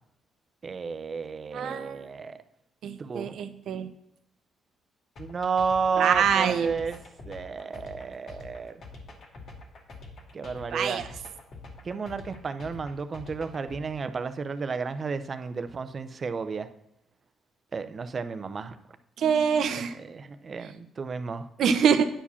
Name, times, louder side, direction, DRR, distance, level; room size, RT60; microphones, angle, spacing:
voice 1, 0.6-2.4 3.0-3.4 5.2-7.0 7.3-8.7 10.3-11.0 11.8-16.7 17.7-18.8 19.7-21.5, right 5 dB, 40° right, 10 dB, 0.7 m, -32 dB
voice 2, 1.5-2.1 2.8-3.9 6.0-6.8 10.7-11.1 19.2-19.9 21.6-22.1, right 7 dB, 70° right, 9 dB, 0.9 m, -25 dB
sound 1, 5.2-13.8, left 3 dB, 60° left, 2.3 m, -45 dB
10.0 x 4.9 x 7.0 m, 0.79 s
cardioid pair, 90°, 0 cm